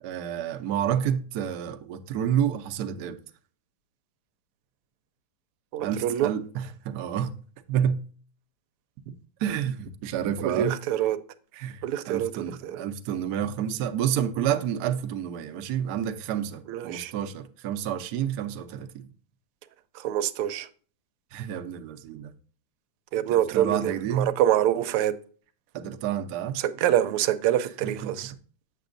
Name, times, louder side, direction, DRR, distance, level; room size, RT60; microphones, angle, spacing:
voice 1, 0.0-3.2 5.8-7.3 7.7-8.0 9.4-10.7 11.5-19.1 21.3-22.3 23.3-24.3 25.7-26.6 27.8-28.1, right 9 dB, 70° right, 1.0 m, -29 dB
voice 2, 5.7-6.3 10.4-11.2 11.8-12.9 16.7-17.1 19.9-20.7 23.1-25.1 26.5-28.3, right 11 dB, 90° right, 1.5 m, -26 dB
7.5 x 7.0 x 2.5 m
omnidirectional pair, 2.4 m